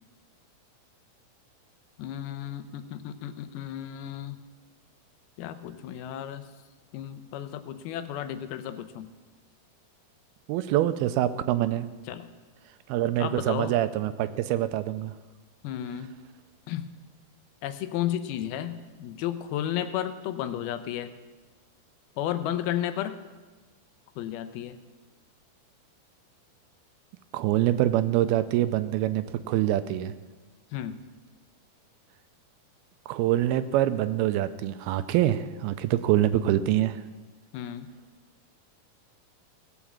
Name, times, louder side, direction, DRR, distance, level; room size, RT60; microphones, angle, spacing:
voice 1, 2.0-4.4 5.4-6.4 6.9-9.1 12.1-12.3 13.2-13.7 15.6-16.1 16.7-16.8 17.6-21.1 22.2-23.2 24.2-24.8 30.7-31.0 37.5-37.9, left 11 dB, 85° left, 10 dB, 2.6 m, -33 dB
voice 2, 10.5-11.9 12.9-15.1 27.3-30.1 33.1-37.0, right 13 dB, 85° right, 12 dB, 2.5 m, -25 dB
17.5 x 7.3 x 7.3 m, 1.3 s
omnidirectional pair, 4.4 m